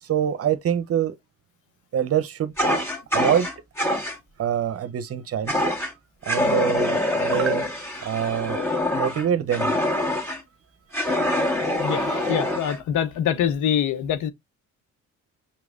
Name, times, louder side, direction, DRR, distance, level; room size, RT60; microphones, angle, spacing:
voice 1, 0.0-1.2 1.9-2.5 3.1-3.5 4.4-5.7 6.2-7.7 8.0-8.6 8.9-9.7, right 9 dB, 50° right, 0.7 m, -25 dB
Fire, 2.6-4.2 5.5-5.9 6.2-10.4 10.9-12.8, left 1 dB, 10° left, 1.7 m, -25 dB
voice 2, 11.8-14.3, left 9 dB, 80° left, 0.8 m, -24 dB
5.6 x 3.1 x 2.4 m
cardioid pair, 90°, 30 cm